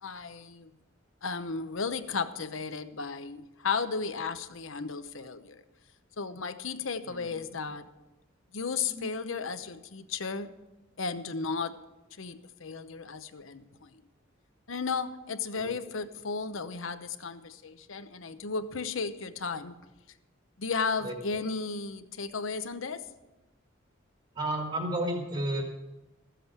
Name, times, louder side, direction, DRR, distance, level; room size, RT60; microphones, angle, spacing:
voice 1, 0.0-0.7 1.2-5.6 6.2-7.9 8.5-10.5 11.0-11.8 12.2-13.9 14.7-19.7 20.6-23.1, left 5 dB, 75° left, 10 dB, 0.9 m, -34 dB
voice 2, 7.0-7.4 8.9-9.4 15.5-15.8 21.0-21.4 24.4-25.6, right 1 dB, 35° right, 2 dB, 1.9 m, -33 dB
14.5 x 7.6 x 8.2 m, 1.1 s
head